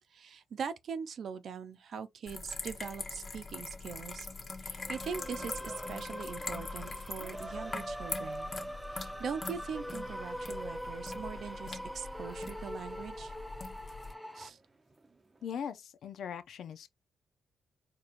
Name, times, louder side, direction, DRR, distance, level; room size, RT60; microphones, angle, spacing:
voice 1, 0.1-4.3 4.6-8.5 8.9-13.3 14.3-14.6, right 6 dB, 65° right, 0.7 m, -41 dB
sound 1, 2.3-14.1, left 3 dB, 35° left, 1.1 m, -43 dB
sound 2, 4.7-15.6, right 2 dB, 25° right, 0.8 m, -52 dB
sound 3, 4.9-14.5, equal, 5° left, 0.5 m, -43 dB
voice 2, 15.4-16.9, left 8 dB, 75° left, 0.6 m, -40 dB
4.5 x 2.9 x 2.5 m
cardioid pair, 90°, 0 cm